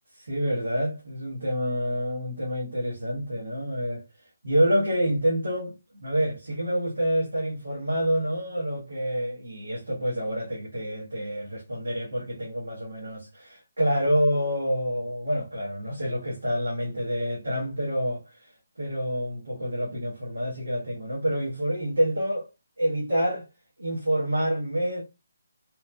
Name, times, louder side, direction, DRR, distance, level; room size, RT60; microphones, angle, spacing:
voice 1, 0.1-4.0 4.4-18.5 18.8-22.5 22.8-23.4 23.8-25.0, equal, 85° right, 0.9 m, -27 dB
2.9 x 2.0 x 2.2 m
figure-of-eight pair, 150°, 0 cm